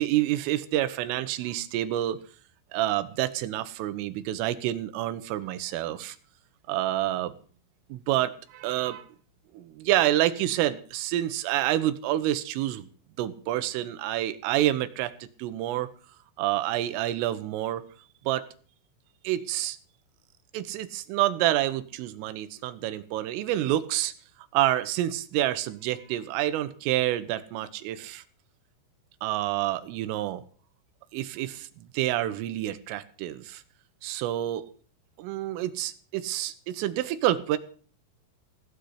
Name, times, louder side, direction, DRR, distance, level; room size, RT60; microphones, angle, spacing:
voice 1, 0.0-2.2 2.7-6.2 6.7-7.3 7.9-9.0 9.6-12.9 13.2-15.1 15.4-15.9 16.4-17.8 18.3-18.5 19.3-19.8 20.5-24.1 24.5-28.2 29.2-30.4 31.1-33.6 34.0-34.7 35.2-37.6, right 14 dB, 80° right, 11 dB, 3.7 m, -28 dB
17.0 x 6.7 x 9.6 m, 0.43 s
omnidirectional pair, 5.9 m